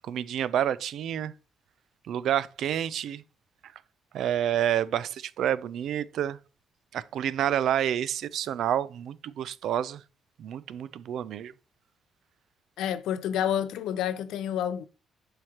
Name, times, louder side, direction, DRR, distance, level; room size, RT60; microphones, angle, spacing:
voice 1, 0.0-1.3 2.1-3.2 4.1-6.4 6.9-10.0 10.4-11.5, right 10 dB, 75° right, 0.4 m, -29 dB
voice 2, 12.8-14.9, left 10 dB, 85° left, 0.5 m, -29 dB
7.6 x 4.8 x 2.9 m
cardioid pair, 90°, 0 cm